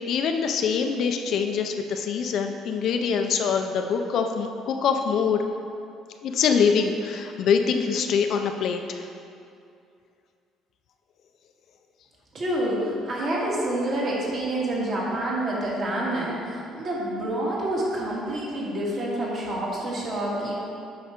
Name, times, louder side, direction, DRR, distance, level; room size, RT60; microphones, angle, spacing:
voice 1, 0.1-5.4 6.2-9.1, left 6 dB, 50° left, 5 dB, 0.5 m, -24 dB
voice 2, 12.3-20.6, right 1 dB, 40° right, -5 dB, 1.9 m, -28 dB
8.2 x 5.6 x 4.4 m, 2.5 s
cardioid pair, 160°, 0 cm